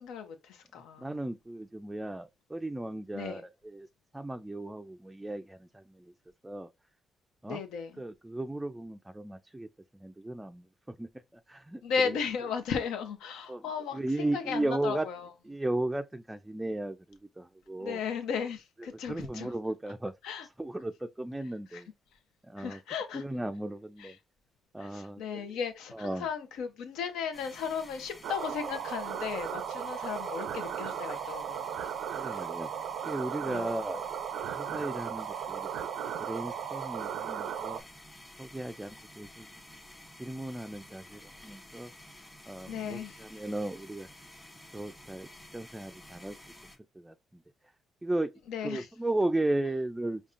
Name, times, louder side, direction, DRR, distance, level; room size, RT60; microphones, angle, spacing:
voice 1, 0.0-1.1 3.1-3.4 7.5-7.9 11.8-14.0 14.3-15.3 17.8-19.5 20.2-20.5 21.7-21.8 22.6-23.2 24.0-24.1 24.8-31.8 32.3-32.4 33.5-33.7 42.7-43.2 48.5-48.9, left 6 dB, 90° left, 0.8 m, -35 dB
voice 2, 1.0-3.9 4.1-6.1 6.4-6.7 7.4-7.6 8.0-9.7 9.9-12.2 13.5-13.6 13.9-15.1 15.4-18.0 18.8-20.1 20.4-21.9 22.4-22.8 23.1-24.2 24.7-25.5 25.9-26.3 32.2-32.7 33.0-34.0 34.5-35.7 36.2-37.8 38.4-39.5 40.2-41.9 42.5-44.1 44.7-46.4 47.0-47.1 48.0-48.3 48.6-50.2, right 1 dB, 10° right, 0.3 m, -35 dB
sound 1, 27.3-46.8, left 1 dB, 15° left, 1.3 m, -51 dB
sound 2, 28.2-37.8, right 9 dB, 85° right, 0.4 m, -36 dB
5.3 x 2.3 x 2.5 m
cardioid pair, 90°, 0 cm